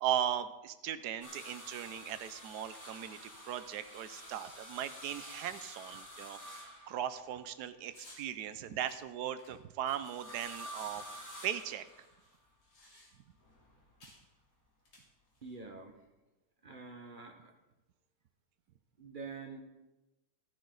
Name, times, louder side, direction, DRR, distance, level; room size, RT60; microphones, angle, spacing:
voice 1, 0.0-3.2 3.5-11.0 11.4-11.8, right 10 dB, 70° right, 12 dB, 1.2 m, -38 dB
sound 1, 1.2-7.5 9.9-12.4 13.4-14.2 15.6-15.7, equal, 10° left, 2.2 m, -49 dB
sound 2, 7.9-8.3 8.9-10.7 10.9-11.0 11.2-13.4 14.0-14.3 14.8-15.6, left 1 dB, 60° left, 3.6 m, -59 dB
voice 2, 15.4-15.9 16.6-17.5 19.0-19.6, right 4 dB, 30° right, 3 dB, 1.3 m, -46 dB
14.0 x 12.5 x 3.9 m, 1.0 s
omnidirectional pair, 2.0 m